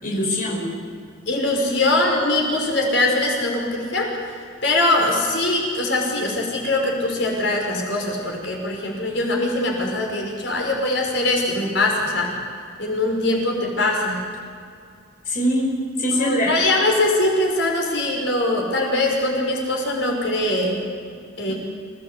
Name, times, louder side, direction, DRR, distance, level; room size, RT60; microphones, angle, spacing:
voice 1, 0.0-0.7 15.3-16.5 21.5-21.6, equal, 45° left, -2 dB, 5.3 m, -23 dB
voice 2, 1.3-4.2 4.6-12.3 12.8-14.2 16.1-20.8 21.4-21.5, left 2 dB, 65° left, 0 dB, 5.9 m, -22 dB
28.0 x 19.0 x 8.4 m, 2.3 s
head